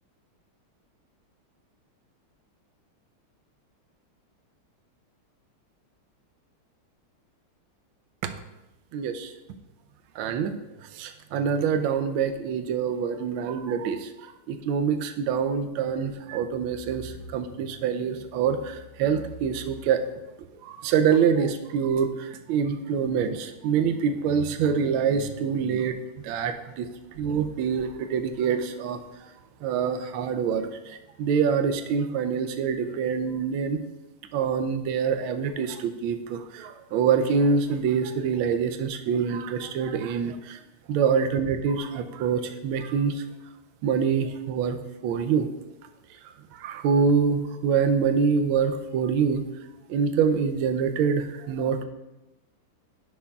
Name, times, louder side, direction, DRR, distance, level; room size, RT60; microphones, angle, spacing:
voice 1, 8.9-9.3 10.2-10.5 10.9-14.1 14.5-20.0 20.6-25.9 26.2-26.9 27.2-29.0 29.6-33.8 34.3-40.6 40.9-43.2 43.8-44.8 45.0-45.5 46.5-49.4 49.9-51.9, right 6 dB, 75° right, 8 dB, 1.3 m, -25 dB
11.0 x 6.2 x 2.3 m, 1.0 s
omnidirectional pair, 2.4 m